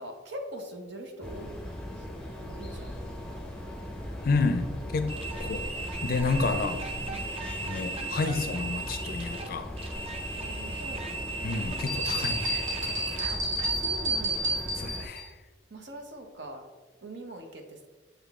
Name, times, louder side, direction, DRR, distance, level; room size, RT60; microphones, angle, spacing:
voice 1, 0.0-1.5 1.9-2.1 2.4-3.8 5.4-5.5 6.5-6.8 7.1-7.6 10.3-11.4 13.3-13.4 13.8-14.6 15.7-16.7 17.0-17.9, right 1 dB, 65° right, 4 dB, 0.9 m, -43 dB
sound 1, 1.2-15.1, left 1 dB, 5° left, 0.8 m, -39 dB
voice 2, 4.2-5.1 5.4-5.6 6.0-6.8 7.6-9.7 11.4-13.3 14.8-15.3, left 3 dB, 50° left, 9 dB, 0.4 m, -30 dB
sound 2, 5.1-13.8, right 3 dB, 30° right, 0.6 m, -37 dB
sound 3, 11.9-15.2, right 1 dB, 80° right, 1.5 m, -30 dB
7.1 x 3.8 x 3.5 m, 1.2 s
head